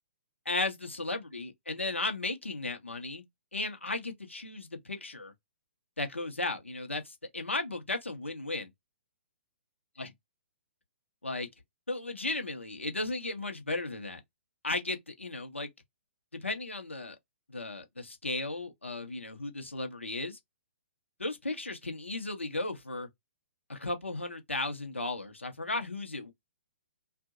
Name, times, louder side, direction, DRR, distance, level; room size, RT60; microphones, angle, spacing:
voice 1, 0.4-3.2 3.5-5.3 6.0-8.7 10.0-10.1 11.2-11.5 11.9-14.2 14.6-15.7 16.3-17.2 17.5-20.4 21.2-23.1 23.7-26.3, left 2 dB, 80° left, 1.0 m, -35 dB
2.7 x 2.4 x 2.5 m
figure-of-eight pair, 120°, 6 cm